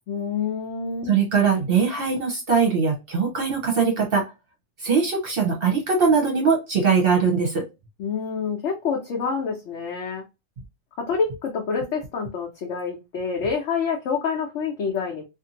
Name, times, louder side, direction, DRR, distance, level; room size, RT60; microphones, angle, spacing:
voice 1, 0.1-1.2 8.0-10.2 11.1-15.2, left 5 dB, 65° left, 1.0 m, -27 dB
voice 2, 1.1-4.2 4.8-7.6, right 5 dB, 50° right, 0.9 m, -21 dB
2.6 x 2.5 x 2.7 m
omnidirectional pair, 1.3 m